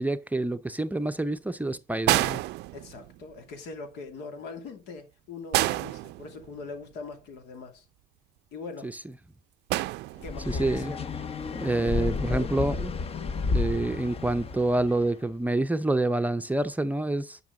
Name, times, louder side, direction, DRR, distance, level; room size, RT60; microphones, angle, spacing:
voice 1, 0.0-2.4 8.8-8.9 10.5-10.9 11.5-12.9 13.5-17.4, right 2 dB, 10° right, 0.6 m, -27 dB
sound 1, 2.1-3.3 5.5-6.8 9.7-10.6 11.9-12.1, right 18 dB, 85° right, 0.5 m, -28 dB
voice 2, 2.7-7.8 8.5-8.9 10.2-11.0 11.9-12.5, left 4 dB, 85° left, 2.6 m, -41 dB
sound 2, 10.2-15.1, left 4 dB, 35° left, 0.8 m, -31 dB
10.5 x 6.0 x 3.8 m
cardioid pair, 110°, 17 cm